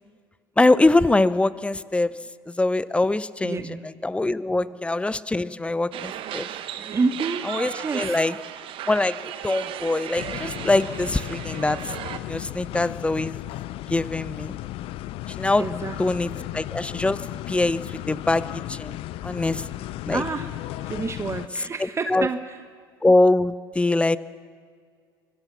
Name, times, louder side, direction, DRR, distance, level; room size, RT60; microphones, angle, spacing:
voice 1, 0.6-2.2 2.5-3.6 4.0-6.5 7.5-8.3 8.9-9.2 9.4-11.8 12.2-13.3 13.9-14.6 15.3-15.6 16.0-17.2 17.5-17.8 18.1-19.0 19.2-19.6 20.1-20.2 22.1-22.3 23.0-24.2, left 2 dB, 10° left, 18 dB, 0.6 m, -23 dB
voice 2, 3.4-3.8 4.5-4.8 6.7-8.2 14.0-14.1 15.6-16.5 20.1-20.5 20.8-22.6, right 4 dB, 20° right, 9 dB, 1.0 m, -29 dB
sound 1, 5.9-12.2, right 11 dB, 45° right, 1.3 m, -35 dB
sound 2, 10.2-21.5, left 15 dB, 50° left, 0.6 m, -35 dB
24.0 x 18.0 x 7.3 m, 2.1 s
hypercardioid pair, 70°, 12 cm